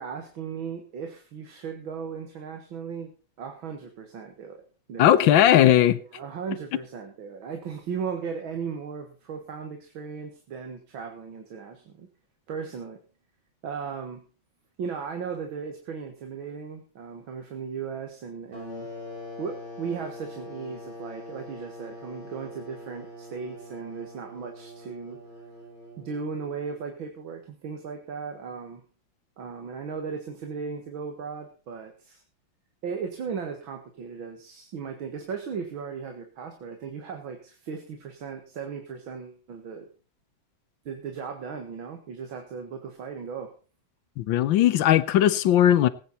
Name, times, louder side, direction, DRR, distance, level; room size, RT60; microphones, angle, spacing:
voice 1, 0.0-3.1 3.4-4.6 4.9-5.2 6.0-12.1 12.5-13.0 13.6-14.2 14.8-18.9 19.4-25.2 26.0-28.8 29.4-32.2 32.8-39.9 40.9-43.5, right 6 dB, 90° right, 2.4 m, -36 dB
voice 2, 5.0-6.0 44.2-45.9, left 11 dB, 80° left, 1.5 m, -18 dB
sound 1, 18.5-26.9, left 1 dB, 40° right, 7.2 m, -43 dB
19.0 x 9.3 x 4.2 m
omnidirectional pair, 2.1 m